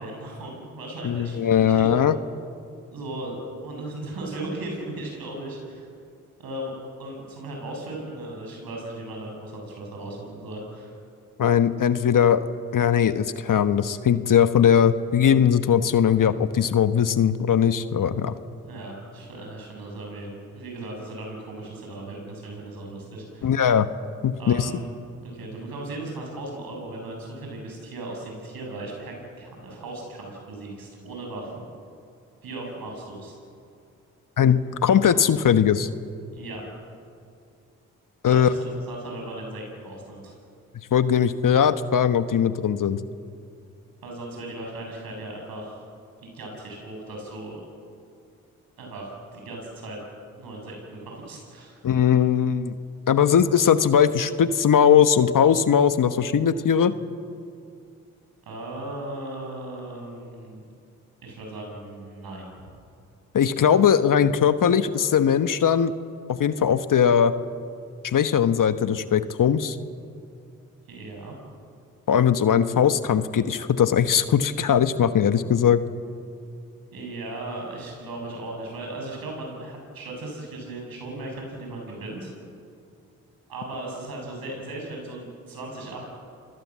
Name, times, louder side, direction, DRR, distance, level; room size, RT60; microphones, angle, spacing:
voice 1, 0.0-1.9 2.9-3.3 3.6-5.9 6.4-10.9 18.6-23.6 24.4-24.9 25.2-31.6 32.4-33.3 36.3-36.6 38.2-40.3 44.0-45.8 46.2-47.6 48.8-50.0 50.4-51.8 58.4-60.7 61.2-62.7 70.9-71.4 76.9-82.3 83.5-86.1, right 2 dB, 75° right, 0 dB, 7.8 m, -37 dB
voice 2, 1.0-2.2 11.4-12.4 12.7-18.3 23.4-23.9 24.2-24.7 34.4-35.9 38.2-38.5 40.9-43.0 51.8-52.7 53.1-56.9 63.3-65.9 66.3-67.3 68.0-69.8 72.1-75.8, left 8 dB, 60° left, 11 dB, 1.3 m, -20 dB
26.5 x 20.5 x 7.5 m, 2.4 s
supercardioid pair, 45°, 36 cm